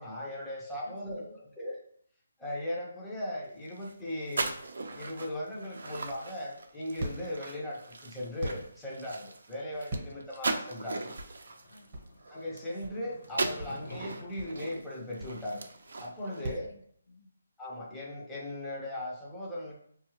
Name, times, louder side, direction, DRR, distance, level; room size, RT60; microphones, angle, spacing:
voice 1, 0.0-1.8 2.4-4.5 4.9-11.1 12.3-15.7 16.0-16.7 17.6-19.7, left 1 dB, 5° left, -6 dB, 0.5 m, -38 dB
voice 2, 0.8-1.4 10.0-10.1 11.7-12.1 16.3-17.3, left 1 dB, 90° left, 5 dB, 0.5 m, -56 dB
sound 1, 3.6-12.9 13.2-16.4, right 3 dB, 65° right, 0.5 m, -39 dB
sound 2, 6.6-16.7, right 1 dB, 25° right, 0.9 m, -42 dB
Skateboard, 10.8-15.9, left 2 dB, 50° left, 0.7 m, -51 dB
5.0 x 2.3 x 3.0 m, 0.65 s
hypercardioid pair, 175°, 0 cm